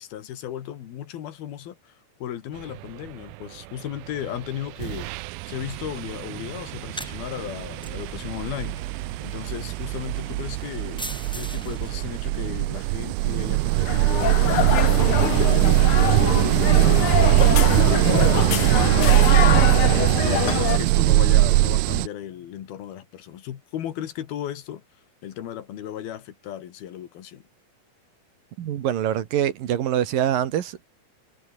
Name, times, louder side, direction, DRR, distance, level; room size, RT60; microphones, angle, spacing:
voice 1, 0.0-5.1 5.5-8.8 9.2-11.0 11.3-14.5 15.2-16.3 16.7-24.8 25.2-27.5, left 11 dB, 85° left, 3.8 m, -35 dB
sound 1, 4.3-4.5 4.8-22.1, right 22 dB, 90° right, 2.4 m, -21 dB
sound 2, 6.7-13.1, equal, ahead, 2.0 m, -42 dB
sound 3, 13.8-20.8, left 10 dB, 65° left, 1.3 m, -25 dB
voice 2, 28.6-30.9, right 10 dB, 70° right, 3.3 m, -24 dB
omnidirectional pair, 4.2 m